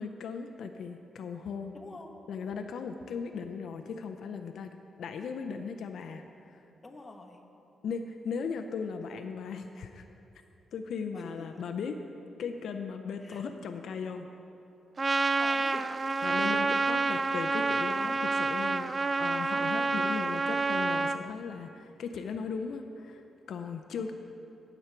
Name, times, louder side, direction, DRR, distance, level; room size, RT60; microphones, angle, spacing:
voice 1, 0.0-1.7 2.3-4.7 5.0-6.6 7.8-10.0 10.7-12.0 12.4-14.3 16.2-18.9 19.2-24.1, left 5 dB, 75° left, 6 dB, 0.5 m, -37 dB
voice 2, 1.7-2.1 6.8-7.5 11.1-11.6 13.2-13.5 15.4-15.9 17.0-17.2 24.0-24.1, left 2 dB, 20° left, 1 dB, 1.2 m, -47 dB
Trumpet, 15.0-21.2, right 3 dB, 30° right, 0.3 m, -28 dB
16.5 x 7.1 x 4.5 m, 2.8 s
cardioid pair, 115°, 0 cm